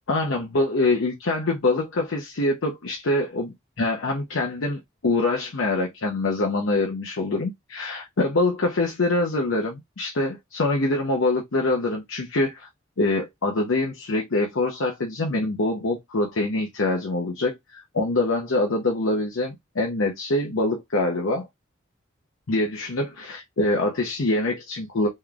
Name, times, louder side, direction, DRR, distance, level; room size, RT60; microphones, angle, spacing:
voice 1, 0.1-12.7 13.0-21.5 22.5-25.1, left 2 dB, 80° left, 0.7 m, -24 dB
3.8 x 3.1 x 2.3 m
head